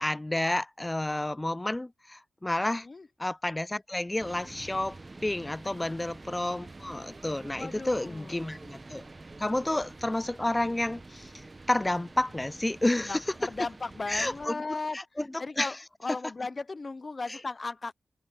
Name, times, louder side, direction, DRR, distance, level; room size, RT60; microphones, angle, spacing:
voice 1, 0.0-2.9 3.2-9.0 9.4-13.5 14.1-15.8 17.3-17.4, left 1 dB, 20° left, 0.3 m, -30 dB
sound 1, 4.2-14.5, right 2 dB, 30° right, 1.4 m, -48 dB
Motorcycle, 4.4-13.8, right 5 dB, 65° right, 6.2 m, -63 dB
voice 2, 7.6-8.4 13.1-15.0 15.4-15.8 16.0-17.9, left 3 dB, 40° left, 1.0 m, -36 dB
open air
cardioid pair, 60°, 0 cm